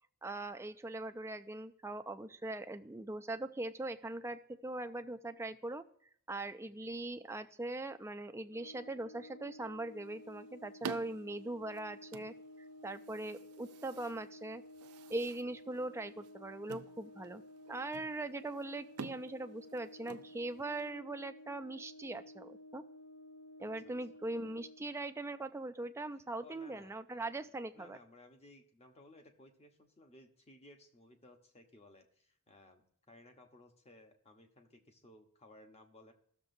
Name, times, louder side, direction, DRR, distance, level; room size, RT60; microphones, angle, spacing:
voice 1, 0.2-5.8 6.3-12.3 12.8-14.6 15.1-17.4 17.7-22.8 23.6-28.0, right 2 dB, 10° right, 9 dB, 0.4 m, -41 dB
Brass instrument, 8.5-24.9, left 1 dB, 90° left, 1.6 m, -54 dB
sound 1, 9.8-20.9, right 5 dB, 80° right, 0.5 m, -51 dB
voice 2, 26.4-27.5 27.7-36.1, left 1 dB, 30° left, 4 dB, 1.1 m, -60 dB
16.0 x 6.7 x 2.7 m, 0.65 s
head